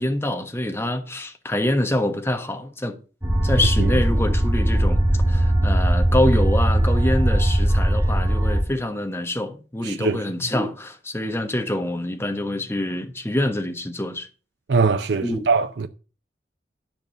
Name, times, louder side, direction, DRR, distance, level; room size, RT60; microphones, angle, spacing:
voice 1, 0.0-2.9 3.4-5.0 5.3-14.3 15.2-15.4, left 1 dB, 15° left, 1.2 m, -25 dB
sound 1, 3.2-8.6, right 1 dB, 15° right, 1.9 m, -19 dB
voice 2, 9.8-10.2 14.7-15.9, right 4 dB, 85° right, 0.6 m, -22 dB
10.5 x 5.2 x 6.7 m
head